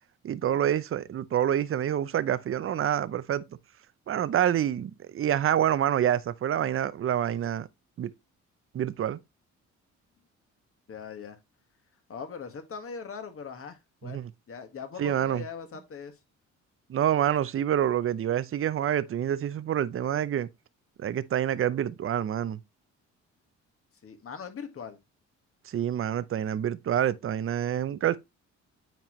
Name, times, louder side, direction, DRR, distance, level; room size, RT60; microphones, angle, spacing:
voice 1, 0.2-3.4 4.1-7.7 8.0-8.1 8.7-9.2 14.0-14.3 15.0-15.4 16.9-20.5 21.0-22.6 25.7-28.2, right 10 dB, 45° right, 0.6 m, -27 dB
voice 2, 10.9-11.4 12.1-16.2 24.0-25.0, left 6 dB, 45° left, 1.8 m, -41 dB
9.0 x 4.4 x 3.1 m
cardioid pair, 90°, 30 cm